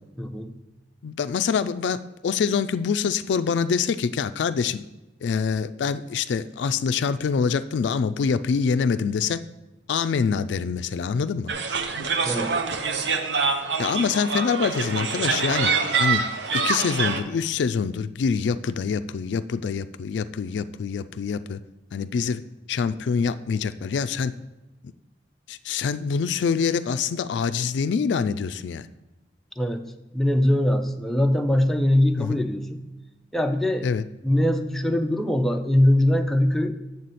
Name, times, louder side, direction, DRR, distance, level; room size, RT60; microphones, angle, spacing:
voice 1, 0.2-0.6 12.2-12.6 29.6-29.9 30.1-32.8 33.3-33.9 34.2-36.7, left 1 dB, ahead, 4 dB, 0.4 m, -22 dB
voice 2, 1.0-4.8 5.2-9.4 9.9-11.5 13.8-16.2 16.5-21.6 21.9-22.4 22.7-24.3 25.5-28.9 32.2-32.4 33.8-34.0, left 6 dB, 70° left, 13 dB, 0.3 m, -25 dB
sound 1, 11.5-17.2, right 5 dB, 70° right, 0.7 m, -25 dB
7.8 x 7.0 x 4.1 m, 1.0 s
head